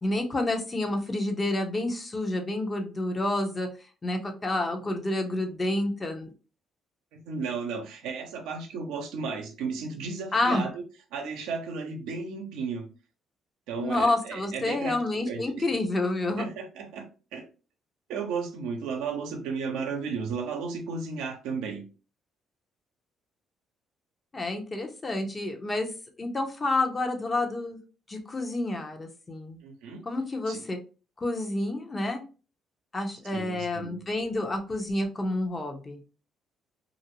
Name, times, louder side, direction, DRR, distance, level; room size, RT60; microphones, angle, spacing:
voice 1, 0.0-3.7 4.0-6.3 10.3-10.7 13.8-16.5 24.3-25.9 26.2-27.8 28.1-29.6 30.0-30.8 31.2-32.3 32.9-36.0, left 2 dB, 30° left, 4 dB, 0.7 m, -29 dB
voice 2, 7.1-10.8 11.1-12.9 13.7-15.0 15.3-15.4 16.4-17.1 17.3-17.5 18.1-21.8 29.6-30.0 30.5-30.6 33.3-34.0, right 5 dB, 90° right, 4 dB, 0.6 m, -34 dB
2.5 x 2.1 x 2.9 m, 0.34 s
cardioid pair, 80°, 0 cm